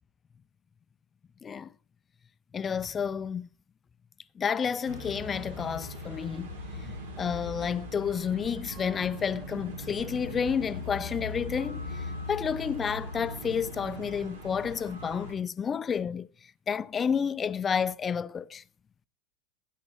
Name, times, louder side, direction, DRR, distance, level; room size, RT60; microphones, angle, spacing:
voice 1, 1.4-1.7 2.5-3.5 4.4-18.6, left 7 dB, 25° left, 0.5 m, -31 dB
sound 1, 4.9-15.3, left 1 dB, 90° right, 2.3 m, -40 dB
18.5 x 9.2 x 3.0 m
hypercardioid pair, 100°, 0 cm